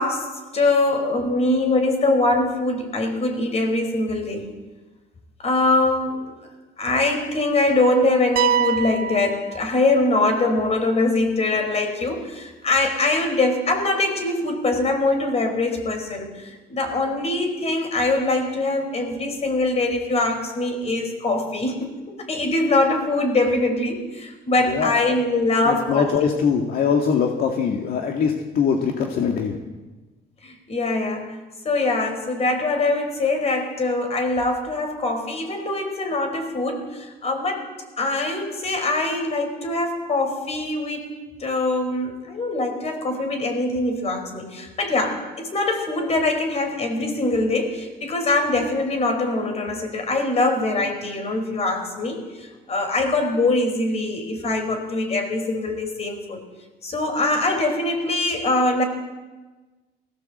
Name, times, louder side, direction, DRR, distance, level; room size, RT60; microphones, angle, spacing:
voice 1, 0.0-4.5 5.4-6.4 6.8-26.1 30.4-31.3 31.6-37.7 38.0-41.1 41.4-56.4 56.8-58.8, left 2 dB, 40° left, 6 dB, 5.0 m, -23 dB
sound 1, 8.4-10.3, right 9 dB, 65° right, 0.8 m, -25 dB
voice 2, 24.6-25.0 25.6-29.6, left 6 dB, 65° left, 3 dB, 2.1 m, -22 dB
20.5 x 16.5 x 8.0 m, 1.2 s
cardioid pair, 110°, 17 cm